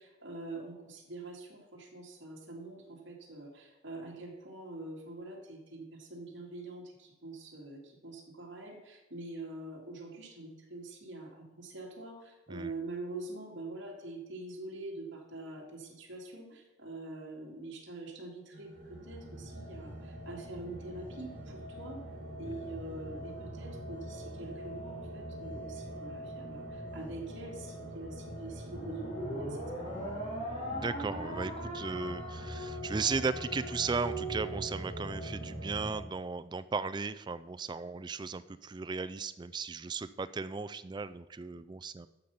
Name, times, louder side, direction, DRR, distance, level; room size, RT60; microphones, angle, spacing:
voice 1, 0.0-22.0 22.4-30.0, right 2 dB, 65° right, -2 dB, 2.6 m, -45 dB
sound 1, 18.5-35.9, equal, 35° right, 4.0 m, -43 dB
sound 2, 28.7-35.2, right 1 dB, 30° left, 4.3 m, -40 dB
voice 2, 30.7-42.1, right 4 dB, 20° right, 13 dB, 0.3 m, -36 dB
12.0 x 6.9 x 5.7 m, 1.0 s
head